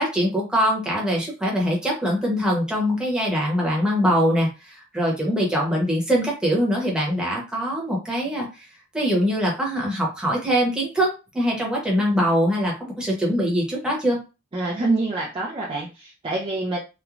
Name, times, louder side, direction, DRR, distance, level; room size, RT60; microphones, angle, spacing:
voice 1, 0.0-8.7 8.9-14.2, equal, 5° right, -3 dB, 0.8 m, -23 dB
voice 2, 14.5-16.8, right 2 dB, 25° right, -3 dB, 0.4 m, -26 dB
3.0 x 2.2 x 2.4 m, 0.30 s
head